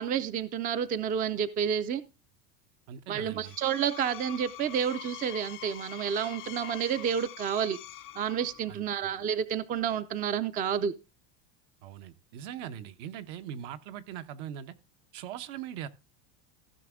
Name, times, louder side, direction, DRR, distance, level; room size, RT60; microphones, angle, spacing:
voice 1, 0.0-2.0 3.1-7.8 8.2-10.9, right 8 dB, 20° right, 0.4 m, -30 dB
voice 2, 2.9-3.6 8.7-9.2 11.8-14.7 15.1-15.9, right 10 dB, 65° right, 1.0 m, -41 dB
Screech, 3.3-8.8, left 13 dB, 30° left, 0.5 m, -45 dB
15.0 x 6.0 x 3.6 m
supercardioid pair, 125°, 40 cm